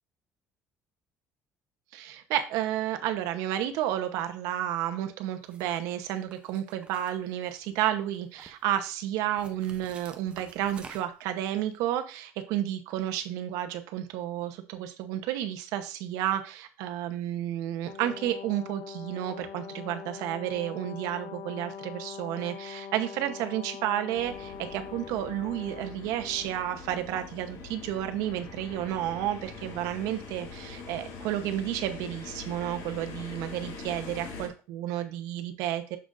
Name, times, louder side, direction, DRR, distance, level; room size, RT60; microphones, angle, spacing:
voice 1, 1.9-36.0, right 12 dB, 85° right, 8 dB, 0.9 m, -31 dB
sound 1, 5.4-5.8 6.3-7.8 8.1-8.7 9.4-11.3, right 4 dB, 20° right, 0.7 m, -50 dB
Brass instrument, 17.8-26.5, left 7 dB, 40° left, 0.5 m, -43 dB
sound 2, 24.1-34.5, left 4 dB, 65° left, 1.7 m, -43 dB
6.9 x 6.2 x 2.5 m, 0.33 s
cardioid pair, 175°, 6 cm